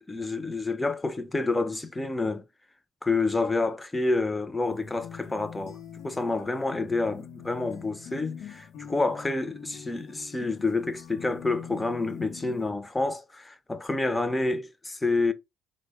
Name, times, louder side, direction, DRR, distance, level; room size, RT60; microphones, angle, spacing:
voice 1, 0.1-2.4 3.0-5.8 6.0-15.3, left 3 dB, 15° left, 0.5 m, -28 dB
sound 1, 4.7-12.7, left 8 dB, 75° left, 0.7 m, -44 dB
3.4 x 2.1 x 3.2 m
cardioid pair, 90°, 0 cm